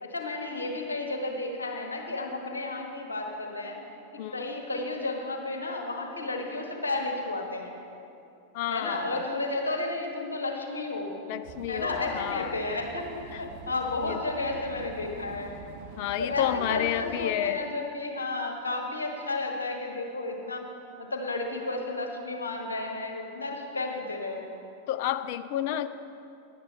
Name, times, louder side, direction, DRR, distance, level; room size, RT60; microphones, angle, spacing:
voice 1, 0.0-3.8 4.1-7.7 8.7-11.2 11.7-15.6 16.2-20.7 21.0-24.6, left 2 dB, 75° left, 1 dB, 1.3 m, -32 dB
voice 2, 4.2-4.5 8.5-9.2 11.3-12.6 13.3-13.4 14.0-14.2 16.0-17.7 24.9-25.9, left 12 dB, 50° left, 13 dB, 0.4 m, -30 dB
sound 1, 11.4-17.2, right 5 dB, 50° right, 0.9 m, -45 dB
11.0 x 8.8 x 5.4 m, 2.7 s
figure-of-eight pair, 90°, 0 cm